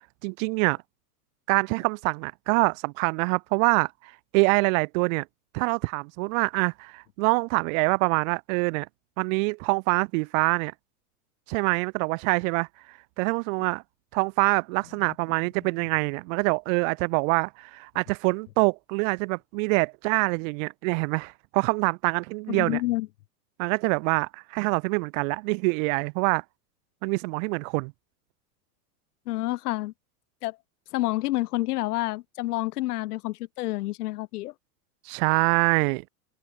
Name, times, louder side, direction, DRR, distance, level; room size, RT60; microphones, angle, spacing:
voice 1, 0.2-0.8 1.5-5.3 5.5-8.9 9.2-10.7 11.5-12.7 13.2-13.8 14.1-22.8 23.6-26.4 27.0-27.9 35.1-36.0, right 33 dB, 55° right, 2.7 m, -25 dB
voice 2, 22.5-23.1 29.3-29.9 30.4-30.6 30.9-34.5, left 18 dB, 75° left, 1.2 m, -28 dB
open air
supercardioid pair, 135°, 47 cm